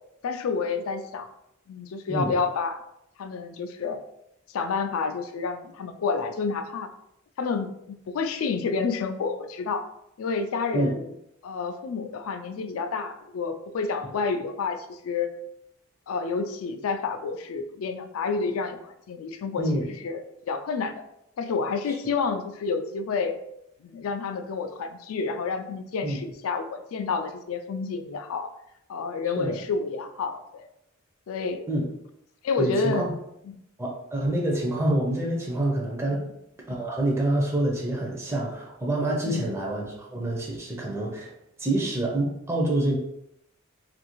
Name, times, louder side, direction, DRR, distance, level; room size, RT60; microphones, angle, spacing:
voice 1, 0.2-1.3 1.7-2.8 3.2-4.0 4.5-6.9 7.4-9.9 10.2-11.1 11.4-15.3 16.1-21.0 21.4-23.4 23.8-28.5 28.9-30.7 31.3-31.6 32.4-33.1 33.5-33.6 36.2-36.3 39.2-39.6, left 4 dB, 80° left, 8 dB, 0.3 m, -29 dB
voice 2, 19.6-19.9 26.0-26.2 29.4-29.6 31.7-31.9 32.6-33.1 33.8-36.2 36.7-41.3 41.6-43.0, right 1 dB, 10° right, -3 dB, 0.4 m, -27 dB
2.6 x 2.5 x 2.9 m, 0.79 s
head